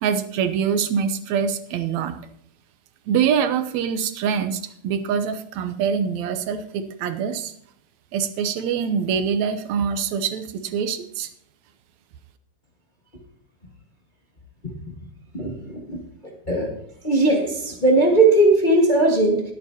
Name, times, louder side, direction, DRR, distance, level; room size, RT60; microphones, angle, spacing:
voice 1, 0.0-2.1 3.1-7.5 8.1-11.3, right 7 dB, 75° right, 9 dB, 2.1 m, -24 dB
voice 2, 15.3-16.0 16.5-16.7 17.0-19.4, right 2 dB, 25° left, 0 dB, 1.2 m, -18 dB
21.5 x 8.5 x 2.8 m, 0.70 s
omnidirectional pair, 3.3 m